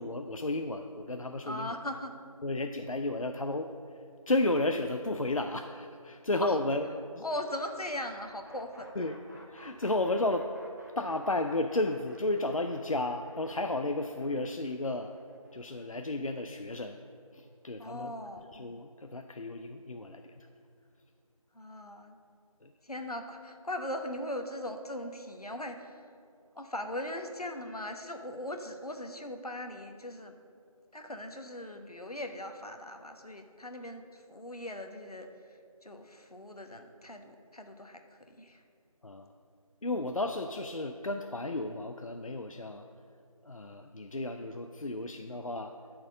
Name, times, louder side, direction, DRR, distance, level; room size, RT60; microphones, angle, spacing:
voice 1, 0.0-1.8 2.4-6.9 7.1-7.3 9.0-9.2 9.5-10.5 11.0-15.1 15.5-17.0 17.3-18.1 18.5-20.5 22.6-22.7 39.0-39.3 39.8-42.9 43.4-45.7, left 2 dB, 65° left, 6 dB, 0.5 m, -33 dB
voice 2, 1.4-2.1 6.4-6.5 7.2-9.1 17.8-18.5 21.5-22.2 22.8-26.0 26.5-30.3 30.9-38.0 38.3-38.6, left 1 dB, 85° left, 5 dB, 1.1 m, -39 dB
sound 1, 7.5-17.4, equal, 30° right, 0.8 m, -56 dB
12.5 x 4.4 x 6.6 m, 2.4 s
figure-of-eight pair, 175°, 19 cm